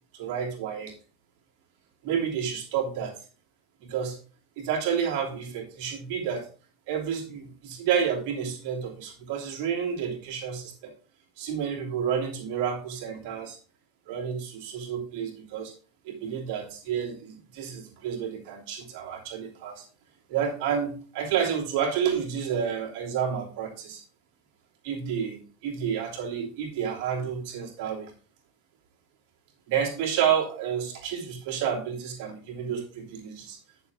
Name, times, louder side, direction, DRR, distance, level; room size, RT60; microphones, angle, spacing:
voice 1, 0.1-1.0 2.0-3.1 3.8-4.2 4.6-6.5 6.9-10.9 11.4-13.6 14.1-15.7 16.0-19.8 20.3-24.0 24.8-28.1 29.7-33.6, right 8 dB, 65° right, -1 dB, 2.9 m, -30 dB
9.9 x 7.0 x 3.6 m, 0.38 s
supercardioid pair, 125°, 0 cm